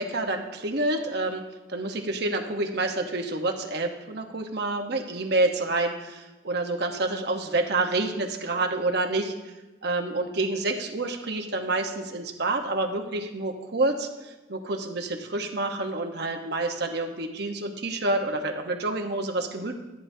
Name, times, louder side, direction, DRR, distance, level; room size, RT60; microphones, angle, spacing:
voice 1, 0.0-1.4 1.7-9.3 9.8-19.7, right 2 dB, 55° right, 3 dB, 1.0 m, -28 dB
13.0 x 9.0 x 2.7 m, 1.1 s
head